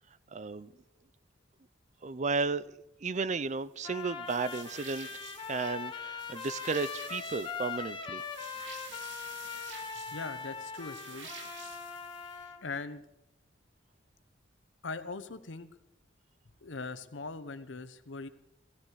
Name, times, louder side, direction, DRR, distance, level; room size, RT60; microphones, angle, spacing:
voice 1, 0.3-0.7 2.0-2.6 3.0-5.1 5.5-8.2, right 4 dB, 40° right, 0.5 m, -33 dB
Trumpet, 3.8-12.6, left 6 dB, 25° left, 1.4 m, -41 dB
sound 1, 4.3-12.4, right 5 dB, 75° right, 2.3 m, -50 dB
voice 2, 10.1-11.3 12.6-13.0 14.8-15.7 16.6-18.3, left 4 dB, 85° left, 1.0 m, -40 dB
16.5 x 15.5 x 4.8 m
head